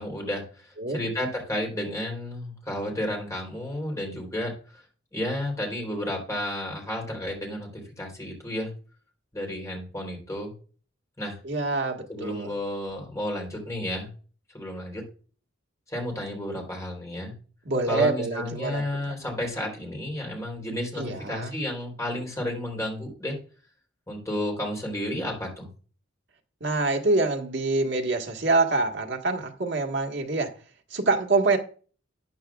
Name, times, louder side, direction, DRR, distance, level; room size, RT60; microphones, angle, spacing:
voice 1, 0.0-4.8 5.1-8.7 9.3-10.5 11.2-11.4 12.1-14.1 14.5-15.0 15.9-17.3 17.9-23.4 24.1-25.7, left 1 dB, 15° left, 0 dB, 3.5 m, -32 dB
voice 2, 11.4-12.5 17.6-19.1 21.0-21.5 26.6-30.5 30.9-31.6, right 3 dB, 60° right, 3 dB, 1.6 m, -26 dB
13.0 x 9.1 x 2.4 m, 0.39 s
head